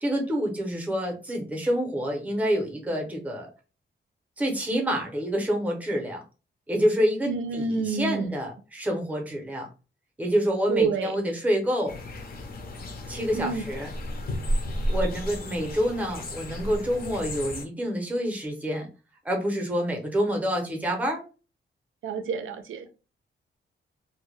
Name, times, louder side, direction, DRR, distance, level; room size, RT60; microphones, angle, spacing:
voice 1, 0.0-3.5 4.4-6.2 6.7-9.7 10.2-11.9 13.1-13.9 14.9-18.9 19.2-21.2, equal, 5° right, 0.5 m, -27 dB
voice 2, 7.3-8.3 10.7-11.3 13.3-13.6 22.0-22.9, right 5 dB, 85° right, 0.4 m, -28 dB
sound 1, 11.9-17.7, equal, 50° left, 0.5 m, -32 dB
2.1 x 2.0 x 3.0 m
wide cardioid pair, 180°, 20 cm